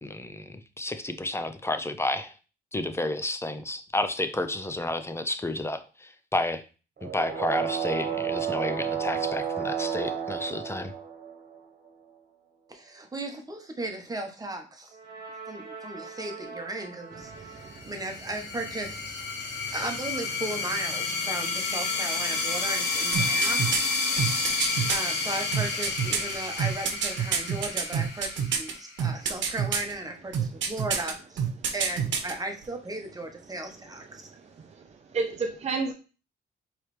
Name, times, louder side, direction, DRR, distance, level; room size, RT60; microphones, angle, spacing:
voice 1, 0.0-2.3 2.7-6.6 7.0-10.9, left 2 dB, 15° left, 9 dB, 0.5 m, -31 dB
sound 1, 7.0-11.6 14.9-17.8, right 8 dB, 50° right, 1.3 m, -33 dB
voice 2, 12.7-15.0 15.5-19.2 19.7-23.6 24.9-31.5 31.7-34.3, right 2 dB, 20° right, 4 dB, 1.1 m, -36 dB
voice 3, 17.4-17.8 35.1-35.9, right 4 dB, 35° right, 3 dB, 0.6 m, -30 dB
sound 2, 17.7-29.0, left 4 dB, 60° left, 1.3 m, -30 dB
sound 3, 23.1-25.0 25.5-28.7 29.0-29.9 30.3-31.1 31.4-32.3 32.6-32.7, right 7 dB, 70° right, 1.0 m, -27 dB
4.6 x 3.2 x 3.2 m, 0.34 s
cardioid pair, 90°, 20 cm